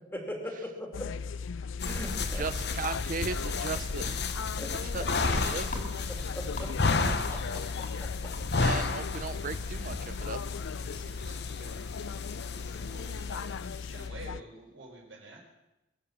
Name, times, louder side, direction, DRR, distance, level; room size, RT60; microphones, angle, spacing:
voice 1, 0.1-1.1 1.8-2.4 4.6-4.7 6.3-6.7 7.1-7.4 8.0-8.1, left 1 dB, 10° left, 2 dB, 2.6 m, -39 dB
sound 1, 0.9-14.4, left 5 dB, 85° left, 0.4 m, -37 dB
sound 2, 1.8-14.1, left 3 dB, 60° left, 1.1 m, -33 dB
voice 2, 2.3-4.3 4.8-6.2 8.6-10.4, right 4 dB, 45° right, 13 dB, 0.5 m, -37 dB
sound 3, 5.1-11.9, left 2 dB, 40° left, 2.7 m, -49 dB
voice 3, 11.0-11.9 12.8-13.6 13.9-15.4, right 2 dB, 80° right, -2 dB, 4.6 m, -49 dB
22.5 x 7.7 x 7.0 m, 0.95 s
head